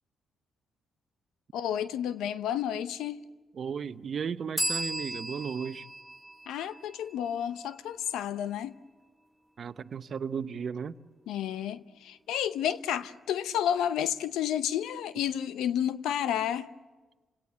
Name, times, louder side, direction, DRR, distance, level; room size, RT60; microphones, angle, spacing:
voice 1, 1.5-3.2 6.5-8.8 11.3-16.7, left 10 dB, 85° left, 0.7 m, -31 dB
voice 2, 3.5-5.9 9.6-11.0, right 6 dB, 60° right, 0.8 m, -35 dB
sound 1, 4.6-8.1, right 1 dB, ahead, 0.9 m, -36 dB
29.5 x 18.0 x 8.3 m
supercardioid pair, 55°, 0 cm